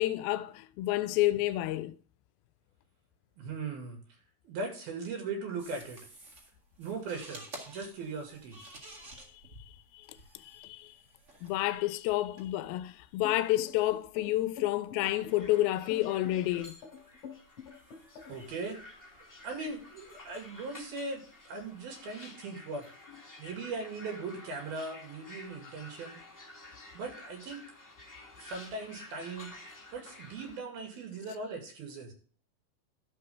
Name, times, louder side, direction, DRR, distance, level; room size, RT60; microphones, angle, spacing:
voice 1, 0.0-2.0 9.9-10.9 11.4-16.8, left 15 dB, 90° left, 2.4 m, -30 dB
voice 2, 3.4-4.0 4.4-6.0 6.8-8.6 18.3-18.8 19.4-22.8 23.4-26.2 26.9-27.6 28.4-29.5 29.9-32.1, right 3 dB, 85° right, 4.3 m, -39 dB
sound 1, 5.6-22.1, right 1 dB, 35° right, 1.3 m, -55 dB
sound 2, 13.2-18.5, left 7 dB, 55° left, 3.4 m, -47 dB
sound 3, 15.1-30.6, left 2 dB, 10° left, 0.8 m, -52 dB
12.5 x 6.8 x 3.6 m
omnidirectional pair, 4.2 m